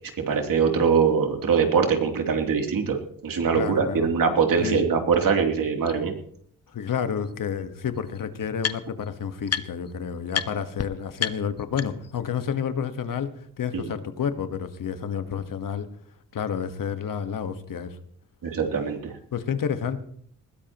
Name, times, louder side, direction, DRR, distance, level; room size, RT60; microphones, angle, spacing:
voice 1, 0.3-3.0 3.2-6.1 13.7-13.9 18.4-19.1, right 6 dB, 70° right, 3 dB, 3.1 m, -22 dB
voice 2, 3.5-4.1 4.6-4.9 6.7-13.3 13.6-15.9 16.3-18.0 19.3-20.0, left 7 dB, 65° left, 10 dB, 1.5 m, -30 dB
sound 1, 5.1-5.2 5.9-6.0 7.2-7.3 7.6-9.1 9.5-9.9 10.3-10.5 10.8-10.9 11.2-12.2, left 7 dB, 45° left, 1.0 m, -31 dB
20.5 x 15.5 x 3.0 m, 0.63 s
cardioid pair, 65°, 35 cm